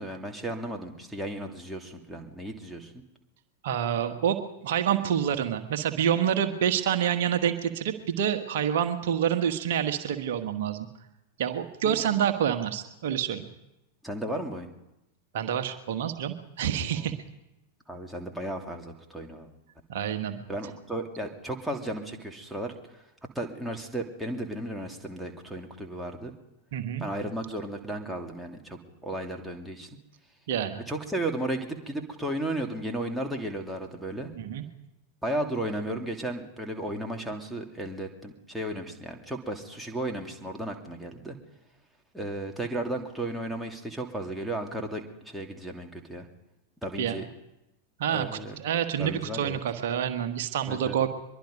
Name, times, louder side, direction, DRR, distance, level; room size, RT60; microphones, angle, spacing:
voice 1, 0.0-3.0 11.8-11.9 14.0-14.7 17.0-17.1 17.9-19.5 20.5-22.7 23.3-26.3 27.0-29.9 30.9-34.3 35.2-41.4 42.1-46.3 46.8-47.2 48.1-48.6 49.0-49.6 50.7-51.0, right 1 dB, ahead, 0 dB, 2.8 m, -34 dB
voice 2, 3.6-10.9 11.4-13.5 15.3-17.1 19.9-20.4 26.7-27.0 30.5-30.8 34.3-34.6 47.0-47.2 48.0-51.1, right 9 dB, 55° right, 7 dB, 1.5 m, -27 dB
23.5 x 22.5 x 5.4 m, 0.92 s
figure-of-eight pair, 90°, 0 cm